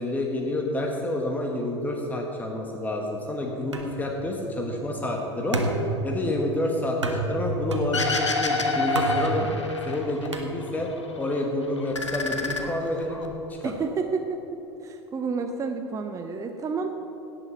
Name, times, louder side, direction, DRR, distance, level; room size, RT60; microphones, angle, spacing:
voice 1, 0.0-5.6 6.0-9.5 9.8-10.9 11.2-13.2 13.5-13.8, left 1 dB, 10° left, 0 dB, 1.4 m, -28 dB
sound 1, 3.7-11.1, right 2 dB, 90° right, 1.1 m, -32 dB
sound 2, 7.9-10.3 10.6-11.4 11.8-13.3, left 3 dB, 85° left, 1.2 m, -28 dB
voice 2, 13.6-14.4 14.8-16.9, right 4 dB, 20° right, 5 dB, 0.7 m, -30 dB
17.0 x 6.1 x 5.7 m, 2.9 s
figure-of-eight pair, 85°, 15 cm